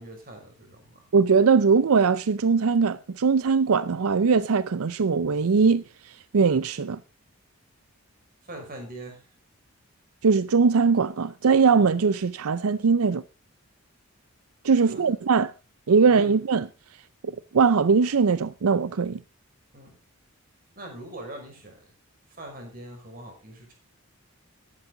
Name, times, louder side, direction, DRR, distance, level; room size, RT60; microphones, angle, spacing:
voice 1, 0.0-1.0 8.4-9.3 14.8-15.1 16.0-16.4 19.7-20.0 20.8-21.9 22.3-23.7, right 1 dB, 40° right, 5.7 m, -42 dB
voice 2, 1.1-7.0 10.2-13.2 14.6-15.5 15.9-16.7 17.2-19.2, right 5 dB, 80° right, 0.5 m, -21 dB
14.0 x 12.0 x 3.8 m
head